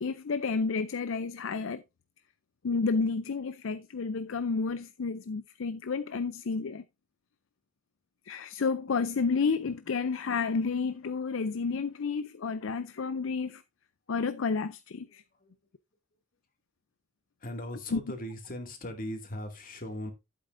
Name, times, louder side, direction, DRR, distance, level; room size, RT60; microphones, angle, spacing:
voice 1, 0.0-1.8 2.6-6.8 8.3-13.6 14.1-15.2 17.9-18.0, left 4 dB, 75° left, 0.5 m, -31 dB
voice 2, 15.1-15.5 17.4-20.1, left 1 dB, 45° left, 2.4 m, -39 dB
11.0 x 8.6 x 2.6 m
head